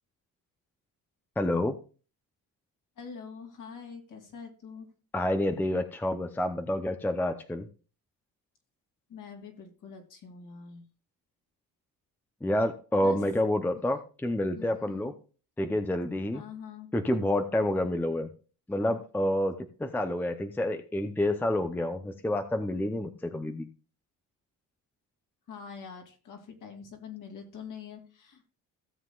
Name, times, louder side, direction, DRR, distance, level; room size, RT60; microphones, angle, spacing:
voice 1, 1.4-1.8 5.1-7.7 12.4-15.1 15.6-16.4 16.9-18.3 18.7-23.7, left 1 dB, 5° left, 8 dB, 0.6 m, -28 dB
voice 2, 3.0-4.9 9.1-10.8 13.0-13.3 14.5-15.1 16.3-16.9 25.5-28.5, left 6 dB, 55° left, 4 dB, 2.7 m, -45 dB
16.5 x 7.4 x 2.4 m, 0.37 s
cardioid pair, 130°, 38 cm